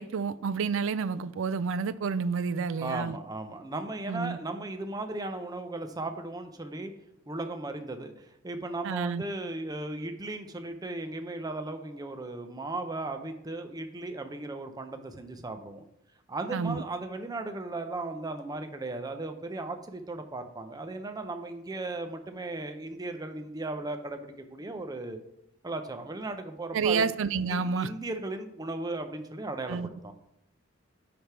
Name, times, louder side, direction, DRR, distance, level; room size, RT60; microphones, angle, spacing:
voice 1, 0.0-3.1 4.1-4.4 8.8-9.2 16.5-16.8 26.7-27.9 29.7-29.9, right 5 dB, 65° right, 0.4 m, -29 dB
voice 2, 2.8-6.9 7.3-15.8 16.3-25.2 25.6-27.1 27.5-30.1, right 2 dB, 20° right, 0.6 m, -36 dB
10.0 x 3.4 x 4.6 m
head